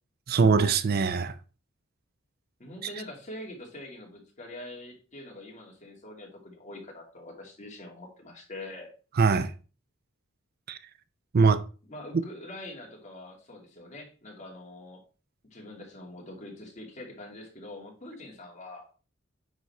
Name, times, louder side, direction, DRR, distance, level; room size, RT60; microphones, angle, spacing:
voice 1, 0.3-1.3 9.2-9.5 10.7-10.8 11.3-11.6, right 5 dB, 50° right, 0.5 m, -22 dB
voice 2, 2.6-8.9 11.9-15.0 15.4-18.9, left 1 dB, 35° left, 2.4 m, -44 dB
9.5 x 4.1 x 4.3 m
head